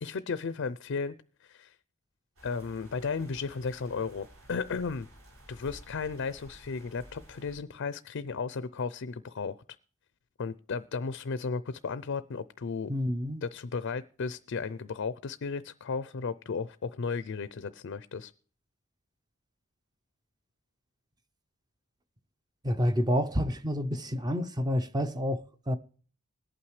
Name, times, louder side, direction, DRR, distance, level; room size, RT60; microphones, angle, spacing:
voice 1, 0.0-1.8 2.4-5.1 5.5-9.5 10.4-12.9 13.4-18.3, left 5 dB, 60° left, 0.5 m, -34 dB
sound 1, 2.4-7.6, equal, 80° right, 7.2 m, -53 dB
voice 2, 12.9-13.4 22.6-25.8, equal, 20° right, 0.6 m, -29 dB
20.5 x 8.7 x 3.2 m
head